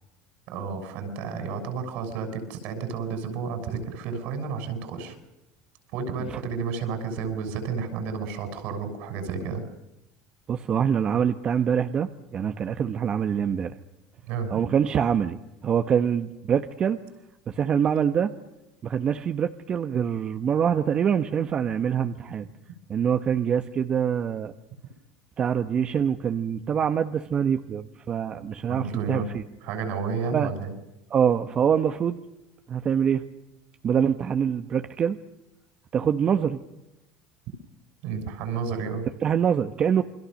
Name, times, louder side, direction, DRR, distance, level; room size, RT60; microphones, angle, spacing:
voice 1, 0.5-5.2 5.9-9.6 14.3-14.6 28.7-29.3 29.6-30.7 38.0-39.0, right 5 dB, 70° right, 8 dB, 6.7 m, -31 dB
voice 2, 10.5-13.7 14.5-17.0 17.5-18.3 18.8-22.5 22.9-24.5 25.4-29.4 30.3-30.5 31.1-32.2 32.7-33.3 33.8-35.2 35.9-36.6 39.2-40.0, right 8 dB, 40° right, 9 dB, 1.3 m, -25 dB
28.5 x 22.5 x 6.6 m, 0.93 s
supercardioid pair, 105°, 3 cm